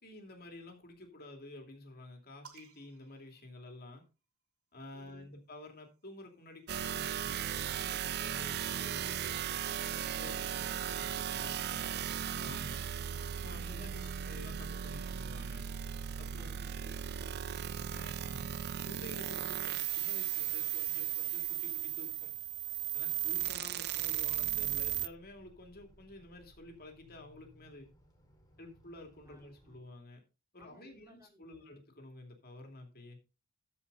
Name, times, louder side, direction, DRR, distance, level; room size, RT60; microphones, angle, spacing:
voice 1, 0.0-4.0 4.7-9.4 10.0-12.0 12.4-12.8 13.4-15.7 16.2-16.6 17.9-18.5 18.8-22.3 22.9-27.9 28.6-30.2 30.5-33.2, left 2 dB, 45° left, 4 dB, 2.8 m, -51 dB
sound 1, 2.4-4.2 5.4-7.0, right 6 dB, 75° right, 2.5 m, -61 dB
voice 2, 4.9-5.3 13.7-14.3 16.3-17.8 23.4-23.8 29.3-29.7 30.6-31.7, right 2 dB, 15° right, 1 dB, 2.1 m, -60 dB
sound 2, 6.7-25.1, right 10 dB, 45° right, 0.4 m, -36 dB
sound 3, 10.4-29.8, left 1 dB, 15° left, 2.3 m, -61 dB
14.0 x 5.6 x 4.0 m, 0.29 s
head